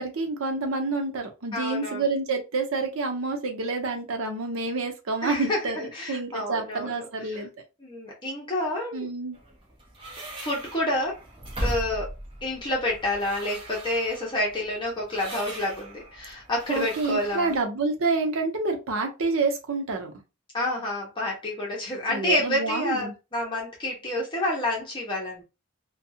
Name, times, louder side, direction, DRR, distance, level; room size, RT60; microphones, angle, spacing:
voice 1, 0.0-7.5 8.9-9.4 16.7-20.1 22.1-23.1, right 3 dB, 75° right, 4 dB, 0.7 m, -28 dB
voice 2, 1.5-2.0 5.2-7.4 7.8-9.1 10.4-11.2 11.6-12.1 12.4-17.6 20.5-25.4, left 1 dB, 20° left, -2 dB, 0.8 m, -29 dB
sound 1, 9.3-17.6, right 1 dB, 25° right, 0.7 m, -38 dB
2.6 x 2.3 x 2.7 m, 0.27 s
head